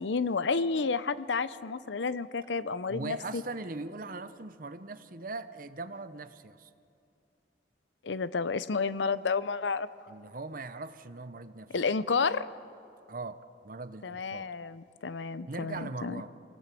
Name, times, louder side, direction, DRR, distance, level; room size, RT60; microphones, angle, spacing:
voice 1, 0.0-3.4 8.0-9.9 11.7-12.5 14.0-16.2, left 4 dB, 85° left, 16 dB, 0.7 m, -31 dB
voice 2, 2.9-6.7 10.1-11.7 13.1-14.5 15.5-16.3, right 3 dB, 50° right, 12 dB, 0.9 m, -40 dB
24.5 x 18.0 x 8.4 m, 2.6 s
head